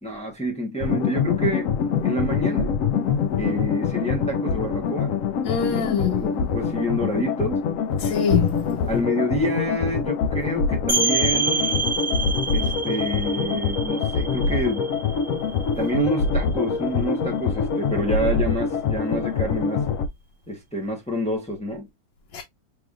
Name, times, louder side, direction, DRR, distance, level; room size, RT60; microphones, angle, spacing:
voice 1, 0.0-1.7 2.0-2.7 3.3-5.1 5.7-5.8 6.2-7.6 8.9-11.8 12.5-14.9 15.8-19.8 20.5-21.9, equal, 10° left, 0.4 m, -28 dB
sound 1, 0.8-20.1, left 5 dB, 70° left, 0.8 m, -25 dB
voice 2, 5.4-6.2 8.0-8.9 22.3-22.4, left 7 dB, 85° left, 1.4 m, -23 dB
sound 2, 10.9-16.4, right 4 dB, 35° right, 1.0 m, -27 dB
4.9 x 3.4 x 2.3 m
omnidirectional pair, 1.9 m